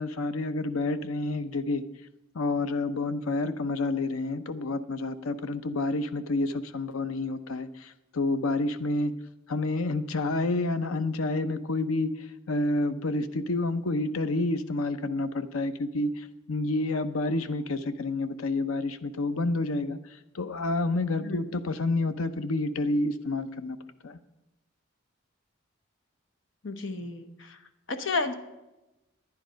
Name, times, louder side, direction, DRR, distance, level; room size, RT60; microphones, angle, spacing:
voice 1, 0.0-1.8 2.3-9.1 9.5-12.1 12.5-23.8 24.0-24.2, left 2 dB, 90° left, 12 dB, 0.7 m, -29 dB
voice 2, 26.6-27.6 27.9-28.3, left 3 dB, 65° left, 9 dB, 1.0 m, -32 dB
10.5 x 9.9 x 5.1 m, 0.98 s
head